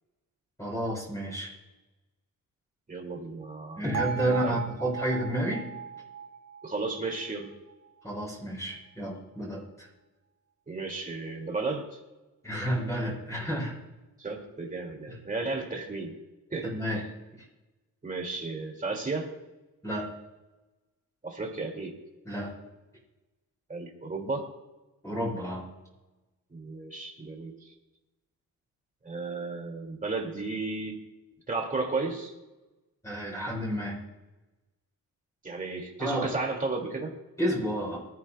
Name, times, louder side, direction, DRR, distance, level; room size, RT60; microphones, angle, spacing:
voice 1, 0.6-1.5 3.8-5.6 8.0-9.9 12.4-13.7 16.6-17.0 19.8-20.1 22.3-22.5 25.0-25.7 33.0-34.0 36.0-36.3 37.4-38.0, equal, 10° left, -5 dB, 5.6 m, -30 dB
voice 2, 2.9-3.8 4.2-4.6 6.6-7.5 10.7-12.0 14.2-16.1 16.5-16.7 18.0-19.3 21.2-21.9 23.7-24.5 26.5-27.7 29.0-31.0 31.5-32.3 35.4-37.1, right 3 dB, 25° right, 1 dB, 2.2 m, -33 dB
Bell, 3.9-8.0, right 7 dB, 50° right, 1.0 m, -38 dB
24.0 x 13.5 x 2.2 m, 1.1 s
wide cardioid pair, 155°, 35 cm